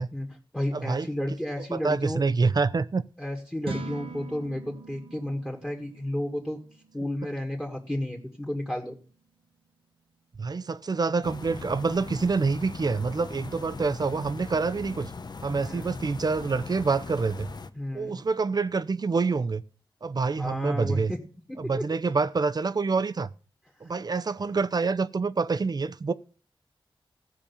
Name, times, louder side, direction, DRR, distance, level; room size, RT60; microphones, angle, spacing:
voice 1, 0.1-2.3 3.2-6.6 6.9-9.0 15.5-15.9 17.8-18.1 20.3-21.2 21.5-21.6 23.8-23.9, left 1 dB, 10° left, 1.9 m, -32 dB
voice 2, 0.7-1.1 1.7-3.0 10.4-15.1 15.4-17.5 17.9-19.6 20.0-21.1 21.6-23.3 23.8-26.1, right 4 dB, 45° right, 0.6 m, -26 dB
sound 1, 3.6-10.0, right 4 dB, 80° right, 1.3 m, -44 dB
sound 2, 11.2-17.7, left 4 dB, 50° left, 0.8 m, -40 dB
15.5 x 5.2 x 7.0 m
wide cardioid pair, 80°, 9 cm